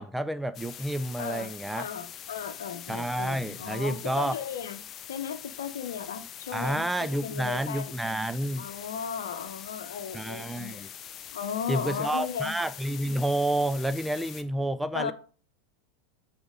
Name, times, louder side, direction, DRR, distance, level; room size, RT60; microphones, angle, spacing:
voice 1, 0.0-1.9 2.9-4.4 6.5-8.7 10.1-10.9 11.7-15.1, right 1 dB, 5° right, 0.5 m, -29 dB
sound 1, 0.5-14.4, left 9 dB, 35° left, 0.6 m, -44 dB
voice 2, 1.2-4.8 5.1-7.9 8.6-10.9 11.3-12.6 14.9-15.1, left 7 dB, 75° left, 0.8 m, -36 dB
7.9 x 4.4 x 3.9 m
hypercardioid pair, 85°, 0 cm